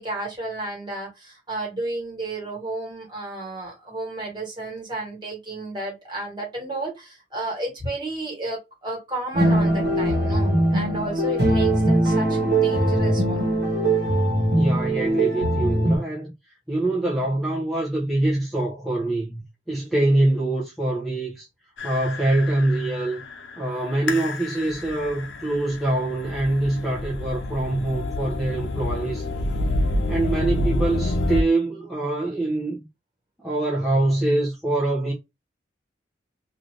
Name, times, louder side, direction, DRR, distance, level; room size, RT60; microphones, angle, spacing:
voice 1, 0.0-13.4, right 2 dB, 25° right, 1.5 m, -32 dB
sound 1, 9.3-16.0, right 1 dB, 60° right, 1.1 m, -21 dB
voice 2, 14.6-16.3 16.7-21.5 21.8-23.2 23.6-29.3 30.1-32.9 33.4-35.1, right 2 dB, ahead, 0.6 m, -24 dB
sound 2, 21.8-31.4, left 1 dB, 85° left, 0.6 m, -28 dB
2.7 x 2.5 x 3.1 m
head